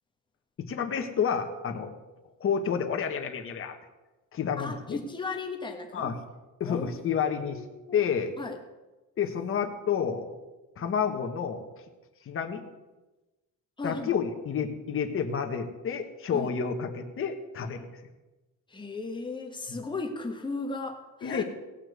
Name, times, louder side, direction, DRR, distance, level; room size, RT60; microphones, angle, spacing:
voice 1, 0.6-1.9 2.4-3.7 4.3-5.0 5.9-6.2 6.6-7.6 7.9-8.3 9.2-10.3 10.8-11.6 12.2-12.6 13.8-17.9 19.7-19.8 21.2-21.4, left 7 dB, 40° left, 4 dB, 1.4 m, -30 dB
voice 2, 4.6-6.1 6.6-8.0 8.4-8.6 13.8-14.2 16.3-16.5 18.7-21.4, left 3 dB, 15° left, 3 dB, 1.6 m, -36 dB
17.0 x 5.8 x 8.1 m, 1.1 s
cardioid pair, 160°, 33 cm